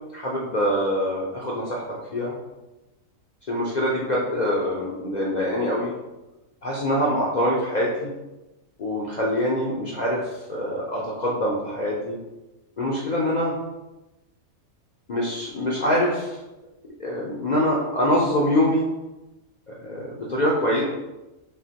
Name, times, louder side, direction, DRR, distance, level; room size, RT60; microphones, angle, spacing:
voice 1, 0.1-1.8 2.1-2.3 3.5-5.9 6.6-8.1 8.8-10.2 10.5-12.2 12.8-13.5 15.1-16.4 17.0-18.9 19.8-20.8, equal, 65° left, -4 dB, 0.4 m, -24 dB
5.4 x 2.1 x 2.8 m, 1.0 s
omnidirectional pair, 1.5 m